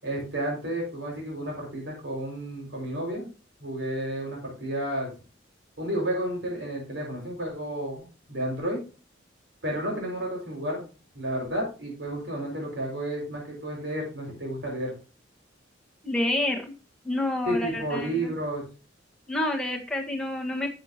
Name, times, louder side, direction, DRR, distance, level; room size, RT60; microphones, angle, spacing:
voice 1, 0.0-3.3 3.6-5.1 5.8-8.8 9.6-10.8 11.1-14.9 17.4-18.6, right 1 dB, 70° right, -1 dB, 5.8 m, -31 dB
voice 2, 16.0-16.7 17.0-18.3 19.3-20.7, left 1 dB, 5° left, -1 dB, 1.6 m, -28 dB
11.0 x 7.6 x 2.9 m, 0.34 s
head